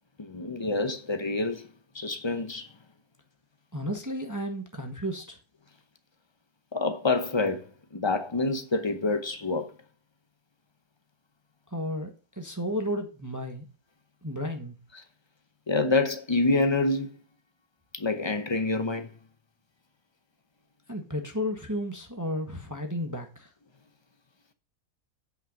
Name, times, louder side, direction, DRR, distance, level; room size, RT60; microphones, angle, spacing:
voice 1, 0.2-1.7 1.9-2.7 6.7-9.7 15.7-17.1 17.9-19.1, left 3 dB, 35° left, 0.4 m, -27 dB
voice 2, 3.7-5.4 11.7-13.7 14.2-14.8 20.9-23.5, equal, 15° right, 1.1 m, -33 dB
9.0 x 5.6 x 5.1 m
omnidirectional pair, 1.7 m